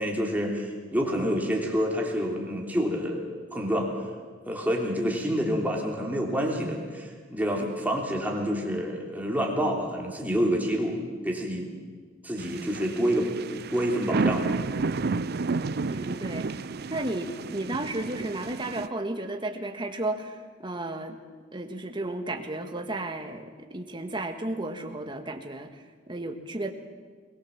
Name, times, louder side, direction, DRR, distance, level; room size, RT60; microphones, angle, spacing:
voice 1, 0.0-3.2 3.5-3.9 4.5-11.0 11.2-11.7 12.2-13.3 13.7-14.6, equal, 10° right, -1 dB, 3.3 m, -28 dB
sound 1, 12.4-18.9, right 4 dB, 55° right, 0.6 m, -31 dB
voice 2, 15.9-21.2 21.5-25.8 26.1-26.7, right 2 dB, 25° right, 5 dB, 1.6 m, -33 dB
22.0 x 19.5 x 7.4 m, 1.5 s
head